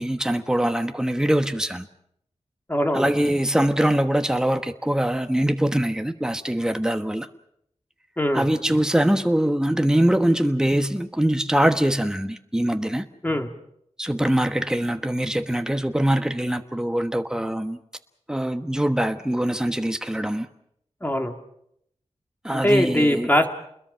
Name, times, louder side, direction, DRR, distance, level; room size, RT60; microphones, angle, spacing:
voice 1, 0.0-1.9 2.9-7.3 8.3-13.0 14.0-17.8 18.3-20.5 22.4-23.3, right 1 dB, 5° right, 7 dB, 1.3 m, -23 dB
voice 2, 2.7-3.1 8.2-8.5 13.2-13.5 21.0-21.3 22.5-23.5, left 1 dB, 15° left, 4 dB, 2.6 m, -21 dB
29.0 x 21.5 x 5.7 m, 0.74 s
wide cardioid pair, 95°, 11 cm